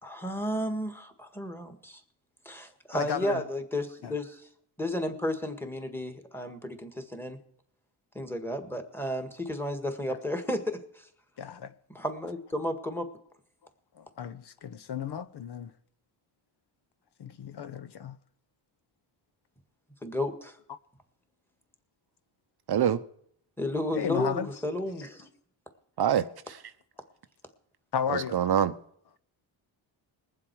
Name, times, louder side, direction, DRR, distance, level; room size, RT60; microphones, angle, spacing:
voice 1, 0.0-2.0 2.5-4.4 4.8-7.4 8.2-11.1 11.9-13.1 20.0-20.6 23.6-25.3, left 1 dB, 5° left, 1.7 m, -33 dB
voice 2, 2.9-3.4 4.0-4.1 10.1-10.2 11.4-11.7 14.0-15.7 17.2-18.2 23.9-24.5 27.9-28.5, left 8 dB, 55° left, 0.8 m, -34 dB
voice 3, 22.7-23.0 26.0-26.6 28.1-28.7, right 9 dB, 55° right, 0.7 m, -25 dB
21.0 x 7.6 x 4.7 m
cardioid pair, 95°, 48 cm